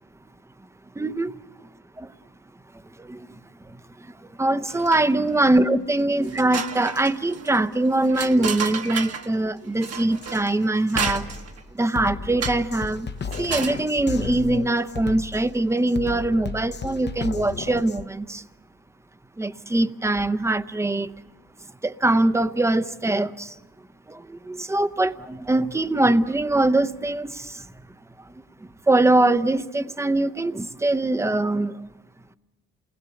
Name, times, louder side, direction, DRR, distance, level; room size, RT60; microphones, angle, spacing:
voice 1, 1.0-1.3 2.0-2.1 3.0-3.2 4.4-11.2 11.8-13.1 13.4-18.4 19.4-21.1 21.8-23.5 24.3-27.5 28.9-31.7, right 2 dB, 10° right, 12 dB, 0.7 m, -22 dB
sound 1, 4.7-5.3 5.7-5.8 6.2-9.3 9.8-11.6 12.4-12.8 13.2-13.8, right 6 dB, 55° right, 1.4 m, -32 dB
Drum kit, 10.2-10.4 10.9-18.1, left 6 dB, 35° left, 0.8 m, -34 dB
28.0 x 19.5 x 7.1 m, 1.2 s
cardioid pair, 90°, 30 cm